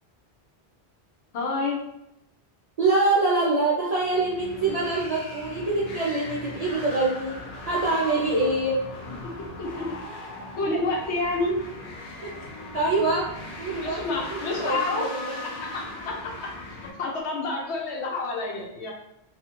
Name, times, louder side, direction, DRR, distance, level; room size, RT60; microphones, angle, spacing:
voice 1, 1.3-1.8 9.2-9.3 9.6-10.0 10.6-11.6 13.8-15.1 15.4-18.9, left 3 dB, 80° left, -1 dB, 1.0 m, -29 dB
voice 2, 2.8-7.4 7.7-8.8 12.2-12.3 12.7-13.3 13.6-14.0 14.3-14.8, right 2 dB, 55° right, -6 dB, 0.4 m, -24 dB
sound 1, 4.0-16.9, left 2 dB, 60° left, 0.7 m, -39 dB
2.6 x 2.4 x 2.9 m, 0.84 s
omnidirectional pair, 1.1 m